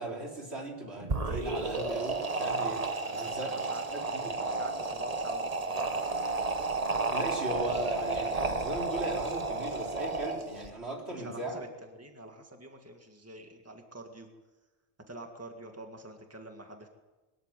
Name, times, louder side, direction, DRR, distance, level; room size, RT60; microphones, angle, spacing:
voice 1, 0.0-2.9 3.1-3.5 3.9-4.4 7.1-11.6, right 1 dB, 70° right, 0 dB, 4.2 m, -37 dB
sound 1, 1.0-10.7, right 3 dB, 35° right, 1.4 m, -32 dB
voice 2, 3.0-3.8 4.4-6.2 11.1-14.3 15.1-16.9, right 1 dB, 15° right, 3 dB, 2.0 m, -47 dB
22.0 x 14.0 x 9.2 m, 1.2 s
omnidirectional pair, 1.1 m